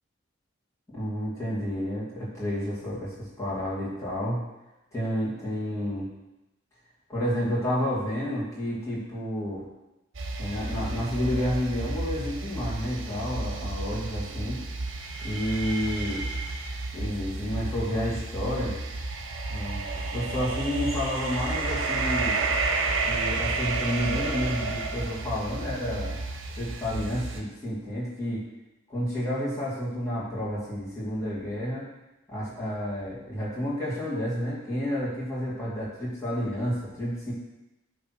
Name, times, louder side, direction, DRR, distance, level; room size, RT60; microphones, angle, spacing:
voice 1, 0.9-4.4 4.9-6.1 7.1-9.6 10.4-14.6 15.2-16.3 16.9-18.8 19.5-22.4 23.1-26.2 26.6-28.4 28.9-31.9 32.3-37.3, equal, 15° left, -9 dB, 2.3 m, -30 dB
sound 1, 10.1-27.4, right 3 dB, 65° right, 0.8 m, -31 dB
8.6 x 3.3 x 6.0 m, 0.97 s
head